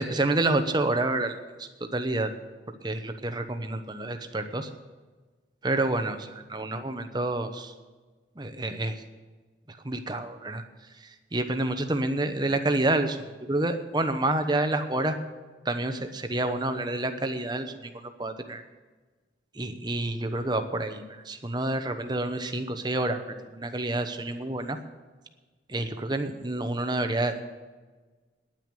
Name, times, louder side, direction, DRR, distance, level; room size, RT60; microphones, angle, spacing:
voice 1, 0.0-1.3 1.6-2.3 2.7-4.7 5.6-7.7 8.4-9.0 9.8-10.6 11.3-13.2 13.5-15.1 15.6-18.6 19.6-23.2 23.5-24.8 25.7-27.4, right 2 dB, 20° right, 7 dB, 0.9 m, -28 dB
10.0 x 9.4 x 8.9 m, 1.3 s
head